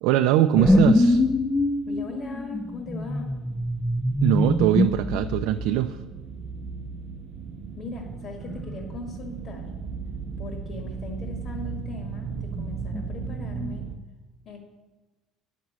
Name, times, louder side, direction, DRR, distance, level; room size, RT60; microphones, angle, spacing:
voice 1, 0.0-1.2 4.2-6.0, right 12 dB, 80° right, 7 dB, 0.4 m, -22 dB
sound 1, 0.6-5.8 8.5-9.2 9.4-9.9 12.4-13.8, left 1 dB, 10° left, 0.4 m, -25 dB
sound 2, 1.2-14.0, right 5 dB, 40° right, 0.7 m, -37 dB
voice 2, 1.9-3.3 7.7-9.7 10.4-13.9 14.4-14.6, left 3 dB, 40° left, 2 dB, 1.5 m, -39 dB
9.4 x 6.0 x 7.3 m, 1.2 s
cardioid pair, 150°, 0 cm